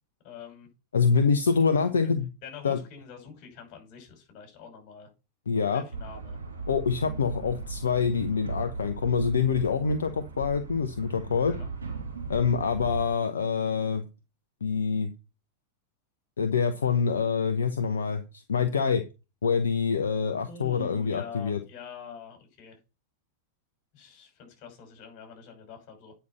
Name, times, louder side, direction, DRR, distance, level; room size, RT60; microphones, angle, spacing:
voice 1, 0.2-0.7 1.6-2.1 2.4-5.1 5.6-6.4 11.4-11.7 20.4-22.8 23.9-26.2, left 6 dB, 40° left, 4 dB, 6.0 m, -45 dB
voice 2, 0.9-2.3 2.6-2.8 5.5-5.8 6.7-11.5 12.3-14.0 14.6-15.1 16.4-19.0 19.4-21.6, left 6 dB, 70° left, 8 dB, 0.9 m, -26 dB
sound 1, 5.9-13.1, right 4 dB, 75° right, 3.5 m, -37 dB
9.6 x 5.7 x 5.8 m, 0.29 s
figure-of-eight pair, 90°, 0 cm